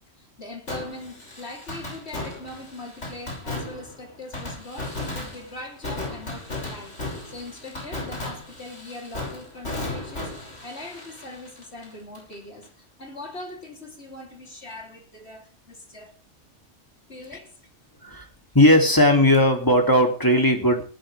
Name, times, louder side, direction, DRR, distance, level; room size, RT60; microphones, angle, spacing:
voice 1, 0.2-16.1 17.1-17.6, left 2 dB, 60° left, 3.7 m, -41 dB
Fireworks, 0.7-12.3 12.6-12.7 19.3-19.4, left 2 dB, 80° left, 6.6 m, -35 dB
voice 2, 18.5-20.8, left 1 dB, 15° left, 2.9 m, -17 dB
18.5 x 12.5 x 3.4 m
omnidirectional pair, 1.2 m